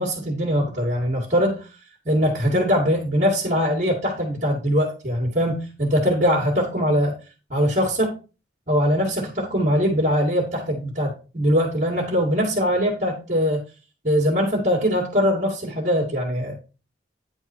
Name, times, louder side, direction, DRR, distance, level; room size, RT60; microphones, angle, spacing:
voice 1, 0.0-1.7 2.1-7.1 7.5-8.1 8.7-13.6 14.0-16.5, equal, 40° right, -5 dB, 2.3 m, -22 dB
10.0 x 4.6 x 4.5 m, 0.34 s
head